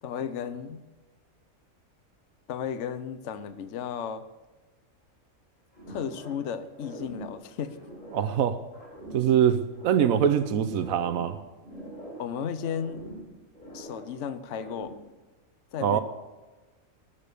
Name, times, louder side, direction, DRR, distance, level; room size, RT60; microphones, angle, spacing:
voice 1, 0.0-0.8 2.5-4.2 5.9-7.8 12.2-13.0 13.7-14.9 15.7-16.0, left 7 dB, 65° left, 11 dB, 1.1 m, -34 dB
sound 1, 5.7-6.5 6.7-8.4 8.7-10.4 10.7-12.3 12.6-14.2 14.5-15.1, equal, 40° left, 4.6 m, -44 dB
voice 2, 8.1-8.6 9.1-11.4 15.8-16.0, right 9 dB, 90° right, 11 dB, 1.2 m, -23 dB
19.5 x 6.9 x 6.7 m, 1.2 s
omnidirectional pair, 1.4 m